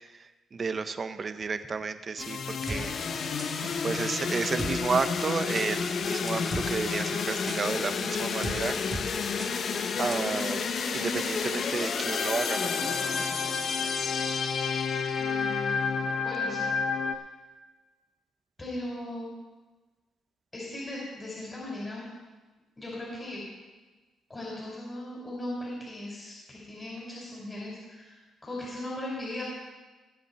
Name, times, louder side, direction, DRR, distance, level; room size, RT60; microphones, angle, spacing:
voice 1, 0.5-2.9 3.8-8.8 10.0-10.6 10.9-12.7, right 5 dB, 40° right, 11 dB, 0.8 m, -31 dB
sound 1, 2.2-17.2, left 5 dB, 55° left, 0.8 m, -30 dB
sound 2, 2.7-2.8 3.4-3.7 4.6-4.7 5.6-5.7 6.3-6.7 7.5-7.6 8.4-8.6 8.9-9.1 9.4-9.5 10.1-10.2, right 2 dB, 15° right, 1.5 m, -35 dB
voice 2, 15.2-17.2 18.6-19.3 20.5-22.1 22.8-23.4 24.3-29.4, left 1 dB, 25° left, -5 dB, 4.5 m, -38 dB
19.5 x 7.5 x 4.3 m, 1.2 s
cardioid pair, 90°, 0 cm